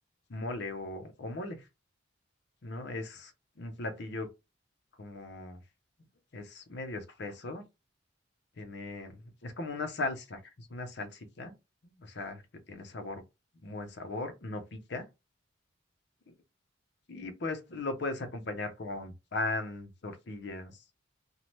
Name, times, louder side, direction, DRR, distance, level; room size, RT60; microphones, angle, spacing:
voice 1, 0.3-1.7 2.6-4.3 5.0-5.6 6.3-7.6 8.6-11.5 12.0-12.4 12.7-13.2 13.6-15.1 17.1-20.8, left 2 dB, 60° left, 0.6 m, -38 dB
2.7 x 2.1 x 3.0 m
head